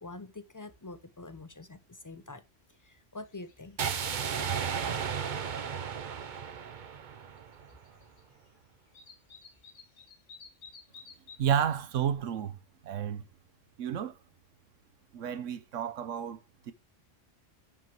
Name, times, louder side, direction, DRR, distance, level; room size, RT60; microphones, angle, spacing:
voice 1, 0.0-2.4 2.8-3.8, left 2 dB, 30° left, 0.3 m, -45 dB
sound 1, 3.2-3.6 3.9-5.0 6.6-6.7 7.2-8.2 8.5-8.6 8.9-11.4, left 5 dB, 75° left, 1.7 m, -53 dB
sound 2, 3.8-7.8, right 7 dB, 45° right, 0.7 m, -34 dB
voice 2, 11.4-12.6 12.8-13.2 13.8-14.2 15.1-16.4 16.7-16.8, right 9 dB, 85° right, 1.2 m, -31 dB
9.6 x 5.2 x 3.0 m
omnidirectional pair, 1.3 m